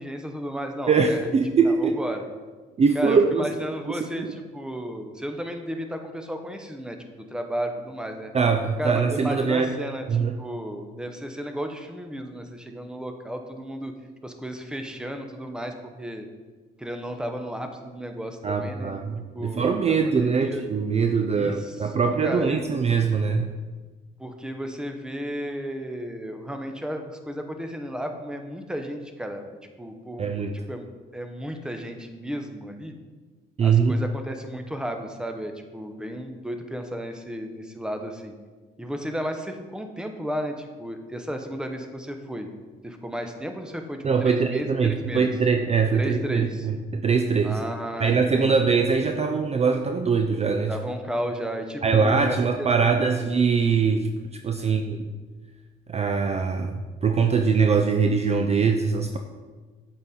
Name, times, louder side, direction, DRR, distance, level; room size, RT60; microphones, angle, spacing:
voice 1, 0.0-1.3 1.6-2.2 2.9-8.3 8.8-13.9 14.2-16.3 16.8-19.0 19.3-20.6 21.3-22.7 24.2-29.5 29.8-30.2 30.7-30.9 31.1-32.9 33.6-38.3 38.8-42.5 42.8-45.3 45.9-46.7 47.4-48.7 50.7-53.3 54.6-54.8, equal, 5° right, 5 dB, 0.7 m, -33 dB
voice 2, 0.9-2.0 2.8-3.5 3.9-4.3 8.3-9.8 10.1-10.4 18.4-23.5 30.2-30.5 33.6-34.0 44.0-47.6 48.0-50.8 51.8-54.1 54.4-55.1 55.9-59.2, right 5 dB, 35° right, 6 dB, 0.4 m, -22 dB
7.6 x 4.2 x 3.8 m, 1.4 s
cardioid pair, 90°, 20 cm